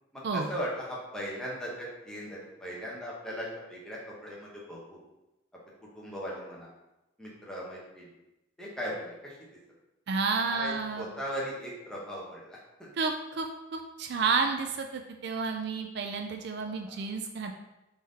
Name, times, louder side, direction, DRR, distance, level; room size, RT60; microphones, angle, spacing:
voice 1, 0.1-5.0 5.9-6.7 7.2-8.1 8.6-9.4 10.4-12.9 16.7-17.0, equal, 5° left, -5 dB, 1.0 m, -38 dB
voice 2, 10.1-11.1 13.0-17.6, right 4 dB, 55° right, 4 dB, 0.3 m, -31 dB
3.7 x 3.5 x 4.0 m, 0.96 s
head